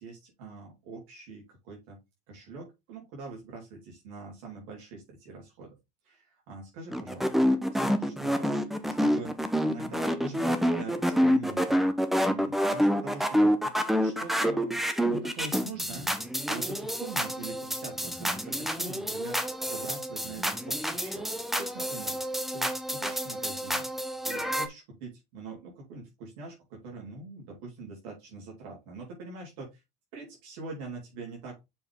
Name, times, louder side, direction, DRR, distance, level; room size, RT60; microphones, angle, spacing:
voice 1, 0.0-2.0 2.3-5.8 6.0-9.4 9.6-11.9 12.2-19.4 19.6-21.3 21.6-22.2 22.5-23.9 24.2-29.8 30.1-31.6, right 3 dB, 65° right, -2 dB, 3.5 m, -43 dB
sound 1, 6.9-24.7, equal, ahead, 0.7 m, -28 dB
7.0 x 5.2 x 3.7 m, 0.22 s
supercardioid pair, 150°, 20 cm